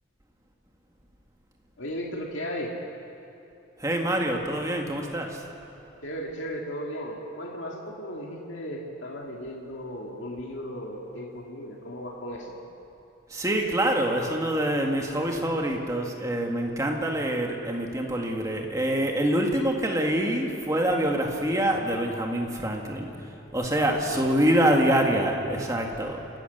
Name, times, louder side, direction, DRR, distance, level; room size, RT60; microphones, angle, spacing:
voice 1, 1.8-2.7 6.0-12.6 23.7-24.3, equal, 70° left, -1 dB, 2.0 m, -36 dB
voice 2, 3.8-5.4 13.3-26.3, right 1 dB, 15° right, 1 dB, 1.9 m, -25 dB
28.0 x 13.5 x 6.8 m, 3.0 s
head